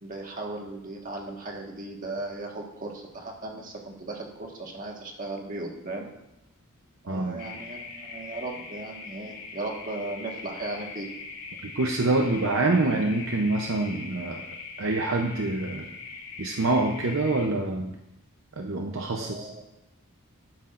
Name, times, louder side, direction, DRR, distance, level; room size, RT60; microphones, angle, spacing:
voice 1, 0.0-6.1 7.0-11.1 19.1-19.6, right 2 dB, 40° right, 0 dB, 1.6 m, -37 dB
voice 2, 7.0-7.4 11.6-14.4 14.8-15.9 16.4-17.9 18.6-19.5, right 2 dB, 65° right, 2 dB, 0.8 m, -26 dB
sound 1, 7.4-17.5, left 4 dB, 60° left, 2.7 m, -41 dB
12.0 x 9.9 x 2.6 m, 0.91 s
head